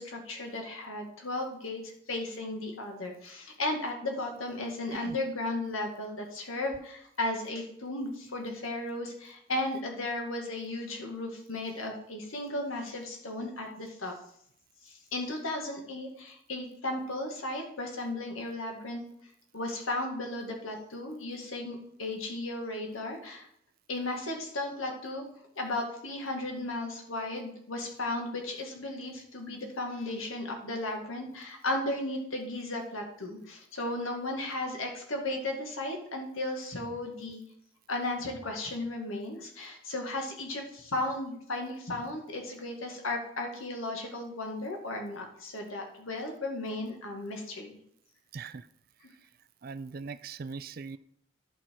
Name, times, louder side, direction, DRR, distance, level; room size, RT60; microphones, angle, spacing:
voice 1, 0.0-14.2 14.8-19.0 19.5-23.5 23.9-25.2 25.6-37.4 37.9-47.8, left 2 dB, 90° left, 2 dB, 2.0 m, -35 dB
voice 2, 48.3-48.7 49.6-51.0, right 4 dB, 45° right, 15 dB, 0.4 m, -40 dB
11.0 x 5.7 x 4.6 m, 0.70 s
head